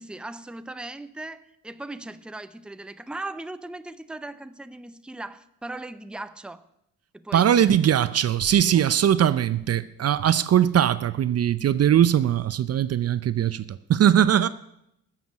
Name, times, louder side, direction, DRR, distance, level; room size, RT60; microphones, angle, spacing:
voice 1, 0.0-6.7 7.1-7.7, right 2 dB, 5° right, 0.7 m, -38 dB
voice 2, 7.3-14.5, right 10 dB, 50° right, 0.6 m, -20 dB
14.0 x 7.6 x 8.6 m
cardioid pair, 80°, 33 cm